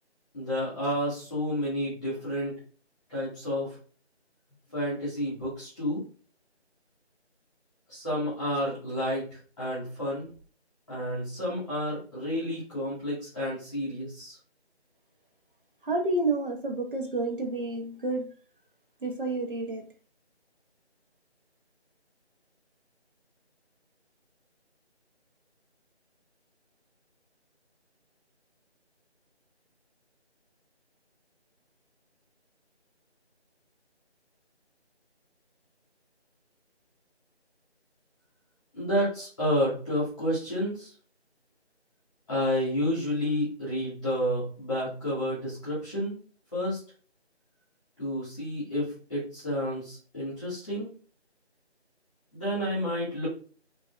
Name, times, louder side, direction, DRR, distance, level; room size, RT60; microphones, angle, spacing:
voice 1, 0.3-2.5 3.1-3.8 4.7-6.0 7.9-10.3 10.9-14.4 38.7-40.9 42.3-46.2 46.5-46.8 48.0-50.9 52.3-53.3, equal, 5° left, -9 dB, 1.4 m, -30 dB
voice 2, 15.8-18.3 19.0-19.8, right 2 dB, 50° right, 2 dB, 1.2 m, -29 dB
5.1 x 3.0 x 2.4 m, 0.41 s
figure-of-eight pair, 165°, 34 cm